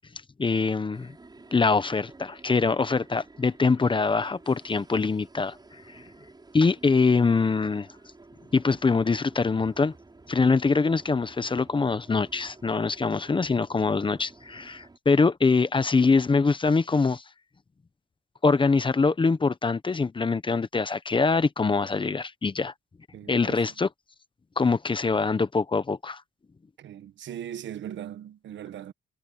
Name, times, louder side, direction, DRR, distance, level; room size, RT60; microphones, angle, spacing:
voice 1, 0.4-1.1 1.5-5.6 5.9-6.0 6.5-7.9 8.5-9.9 10.3-17.2 18.4-22.7 23.3-23.9 24.6-26.2, left 4 dB, 25° left, 1.0 m, -24 dB
sound 1, 0.9-15.0, right 3 dB, 20° right, 6.4 m, -52 dB
voice 2, 23.1-23.6 26.8-28.9, right 10 dB, 70° right, 1.4 m, -39 dB
cardioid pair, 90°, 20 cm